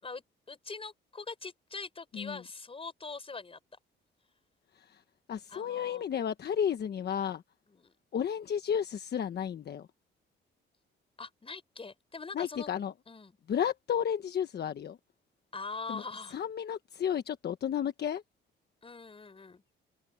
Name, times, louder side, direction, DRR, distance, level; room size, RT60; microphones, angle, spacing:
voice 1, 0.0-3.6 5.5-6.0 7.7-8.0 11.2-12.7 13.1-13.4 15.5-16.4 18.8-19.6, left 4 dB, 30° left, 5.4 m, -43 dB
voice 2, 5.3-7.4 8.1-9.9 12.3-12.9 13.5-15.0 15.9-16.0 16.3-18.2, left 8 dB, 55° left, 1.3 m, -32 dB
open air
cardioid pair, 90°, 20 cm